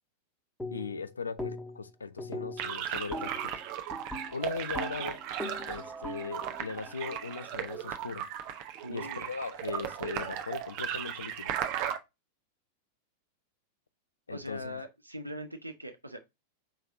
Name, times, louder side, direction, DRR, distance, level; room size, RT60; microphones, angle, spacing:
sound 1, 0.6-1.0 1.4-1.9 2.2-8.0, left 1 dB, 5° left, 1.5 m, -41 dB
voice 1, 0.7-3.5 4.3-5.2 5.6-8.3 8.9-11.5 14.3-14.8, left 5 dB, 75° left, 0.5 m, -39 dB
sound 2, 2.6-12.0, right 10 dB, 45° right, 0.8 m, -36 dB
voice 2, 8.8-9.3 14.3-16.2, equal, 85° right, 0.8 m, -41 dB
5.5 x 3.4 x 2.6 m
figure-of-eight pair, 90°, 0 cm